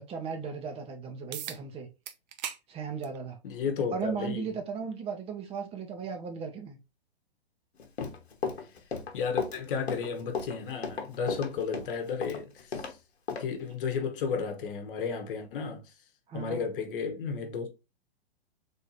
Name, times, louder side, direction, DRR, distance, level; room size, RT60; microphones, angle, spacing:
voice 1, 0.0-1.9 2.7-3.4 3.9-6.8 16.3-16.7, right 6 dB, 20° right, 0.8 m, -36 dB
sound 1, 1.3-1.6 2.1-2.6 3.0-3.2 4.3-4.4 9.3-9.4, right 10 dB, 45° right, 0.5 m, -38 dB
voice 2, 3.4-4.5 8.6-8.8 9.1-13.0 13.3-15.9 16.3-17.7, left 6 dB, 55° left, 1.1 m, -33 dB
Run, 7.8-12.9 13.3-13.4, left 5 dB, 80° left, 1.0 m, -34 dB
3.6 x 2.7 x 3.9 m
hypercardioid pair, 120°, 32 cm